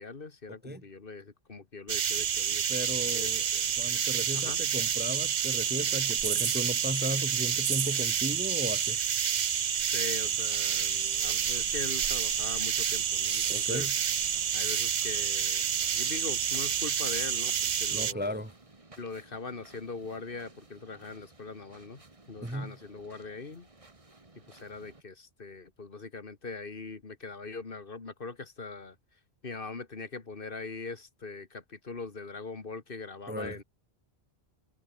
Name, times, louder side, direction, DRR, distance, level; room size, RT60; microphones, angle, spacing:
voice 1, 0.0-3.8 4.3-4.6 9.9-14.0 14.5-18.4 19.0-22.0 22.3-23.7 24.5-29.0 29.4-33.6, left 4 dB, 55° left, 2.0 m, -41 dB
sound 1, 1.9-18.1, right 8 dB, 50° right, 0.8 m, -29 dB
voice 2, 2.7-3.4 3.8-9.0 13.5-13.9 17.9-18.5 22.4-22.8 33.3-33.6, equal, 10° right, 0.9 m, -35 dB
sound 2, 10.2-25.0, right 2 dB, 30° right, 2.0 m, -56 dB
omnidirectional pair, 1.1 m